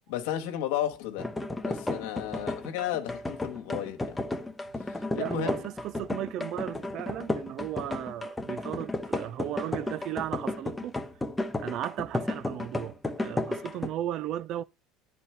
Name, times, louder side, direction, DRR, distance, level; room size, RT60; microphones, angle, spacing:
voice 1, 0.1-1.3 1.7-4.2 4.9-5.6, left 11 dB, 85° left, 1.3 m, -33 dB
sound 1, 1.2-13.9, left 2 dB, 10° left, 0.8 m, -33 dB
voice 2, 5.1-11.0 11.6-14.6, right 12 dB, 55° right, 0.4 m, -35 dB
10.0 x 4.2 x 4.4 m
supercardioid pair, 115°, 0 cm